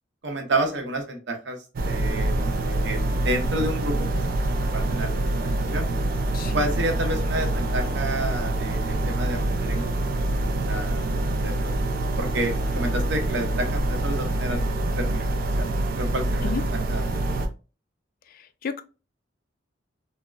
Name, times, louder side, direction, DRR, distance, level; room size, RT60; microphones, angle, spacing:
voice 1, 0.2-1.6 1.8-2.4 2.7-4.4 4.7-5.9 6.5-10.1 10.4-11.8 12.2-15.7 16.0-17.3, right 1 dB, 70° right, 0.8 m, -30 dB
sound 1, 1.8-17.5, right 2 dB, 50° right, 0.4 m, -25 dB
voice 2, 6.3-6.7 16.4-16.6 18.6-18.8, left 5 dB, 50° left, 0.3 m, -30 dB
3.5 x 2.0 x 2.3 m
head